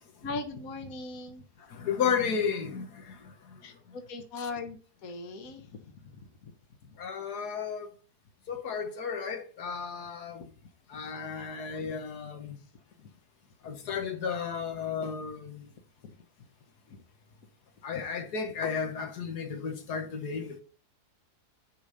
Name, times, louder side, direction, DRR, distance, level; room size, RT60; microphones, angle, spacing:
voice 1, 0.2-1.4 3.6-6.5 6.9-7.0 10.9-11.0 13.0-13.1 13.6-14.0 16.0-16.2 16.9-17.0, left 3 dB, 65° left, 1.5 m, -40 dB
voice 2, 1.7-3.2 4.4-4.5 7.0-7.9 8.5-10.5 10.9-12.6 13.6-15.7 17.8-20.6, left 6 dB, 80° left, 1.7 m, -33 dB
10.0 x 5.0 x 5.6 m
omnidirectional pair, 1.7 m